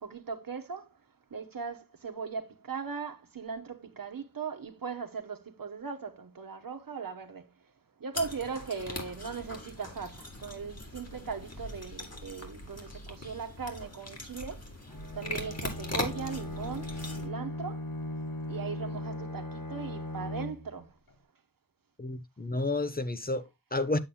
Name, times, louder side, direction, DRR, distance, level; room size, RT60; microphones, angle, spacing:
voice 1, 0.0-0.9 1.3-7.5 8.0-14.7 15.1-17.9 18.5-20.9, right 5 dB, 75° right, 1.2 m, -39 dB
sound 1, 8.1-17.3, left 1 dB, 50° left, 2.3 m, -41 dB
Bowed string instrument, 14.9-20.9, left 1 dB, 75° left, 1.4 m, -38 dB
voice 2, 22.0-24.0, left 2 dB, 25° left, 0.9 m, -31 dB
8.5 x 7.5 x 2.2 m
wide cardioid pair, 55°, 34 cm